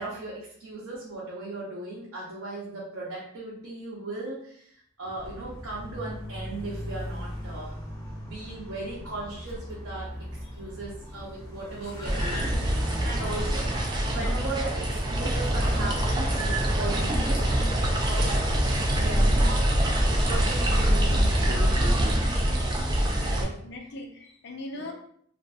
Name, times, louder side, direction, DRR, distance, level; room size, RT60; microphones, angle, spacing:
voice 1, 0.0-7.8 8.2-10.1 10.5-13.7 14.1-22.2 23.3-23.5 24.7-24.9, right 2 dB, 75° right, -7 dB, 0.7 m, -37 dB
Car, 5.2-21.9, equal, 15° left, 0.7 m, -40 dB
sound 1, 12.1-23.4, right 1 dB, 20° right, 0.3 m, -24 dB
voice 2, 23.0-24.9, left 2 dB, 50° left, 2 dB, 0.4 m, -40 dB
2.5 x 2.5 x 2.3 m, 0.65 s
head